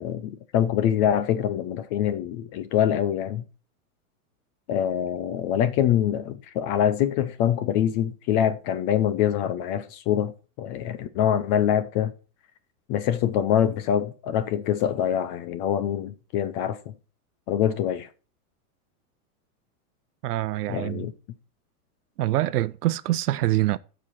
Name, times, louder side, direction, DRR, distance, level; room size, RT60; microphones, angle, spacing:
voice 1, 0.0-3.4 4.7-12.1 12.9-16.9 17.5-18.1 20.7-21.1, left 10 dB, 30° left, 0.6 m, -24 dB
voice 2, 20.2-21.0 22.2-23.8, right 15 dB, 85° right, 0.7 m, -25 dB
13.5 x 5.1 x 4.1 m
supercardioid pair, 150°, 45 cm